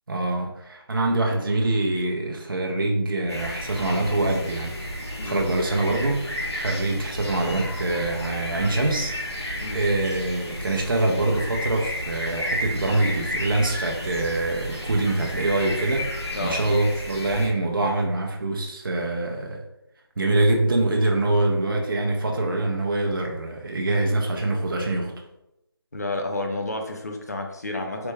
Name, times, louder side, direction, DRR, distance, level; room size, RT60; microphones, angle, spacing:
voice 1, 0.1-4.8 5.2-9.1 9.7-19.6 20.2-25.1, right 2 dB, 55° right, 1 dB, 0.5 m, -24 dB
sound 1, 3.3-17.5, left 1 dB, 80° left, 1.1 m, -32 dB
voice 2, 25.9-28.1, left 2 dB, 40° left, 3 dB, 0.4 m, -30 dB
3.3 x 2.1 x 3.2 m, 0.87 s
figure-of-eight pair, 170°, 14 cm